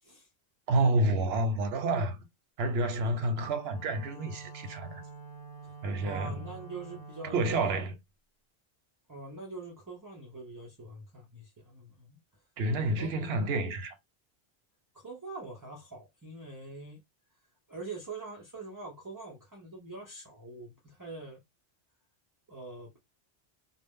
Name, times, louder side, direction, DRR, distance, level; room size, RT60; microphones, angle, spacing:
voice 1, 0.7-2.2 2.6-5.0 5.8-6.5 7.2-7.9 12.6-13.9, right 2 dB, 85° right, 0.9 m, -29 dB
Wind instrument woodwind instrument, 3.0-7.5, right 5 dB, 65° left, 0.9 m, -47 dB
voice 2, 6.0-7.8 9.1-12.2 13.0-13.1 14.9-17.0 17.7-21.4 22.5-23.0, right 3 dB, 25° right, 0.5 m, -44 dB
2.0 x 2.0 x 3.5 m
omnidirectional pair, 1.0 m